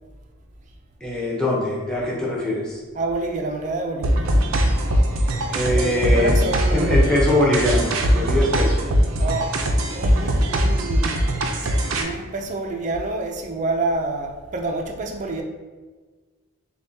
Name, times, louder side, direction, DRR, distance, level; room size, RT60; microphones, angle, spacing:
voice 1, 1.0-2.8 5.5-6.4 6.7-8.8, left 1 dB, 5° left, -4 dB, 0.8 m, -22 dB
voice 2, 2.9-4.3 5.7-7.0 9.2-9.5 9.9-11.5 11.8-15.4, right 2 dB, 35° right, 3 dB, 0.4 m, -28 dB
sound 1, 4.0-12.0, equal, 90° right, 0.5 m, -20 dB
6.8 x 2.3 x 2.7 m, 1.4 s
head